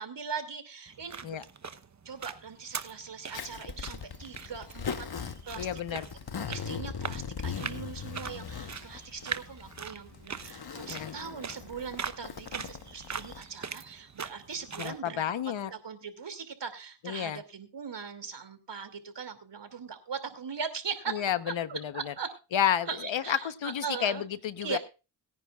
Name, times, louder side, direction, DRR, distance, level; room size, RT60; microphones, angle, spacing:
voice 1, 0.0-1.4 2.0-6.0 6.4-15.3 15.7-21.2 21.5-22.3 22.9-24.2 24.6-24.8, right 6 dB, 65° right, 8 dB, 2.7 m, -40 dB
sound 1, 0.9-15.0, right 6 dB, 40° right, 1.0 m, -42 dB
Zipper (clothing), 3.3-13.4, left 6 dB, 55° left, 1.2 m, -40 dB
voice 2, 5.6-6.1 10.9-11.1 14.8-15.7 17.0-17.4 21.1-22.1 22.5-24.8, left 9 dB, 80° left, 13 dB, 1.1 m, -31 dB
22.0 x 10.0 x 2.4 m, 0.31 s
cardioid pair, 50°, 46 cm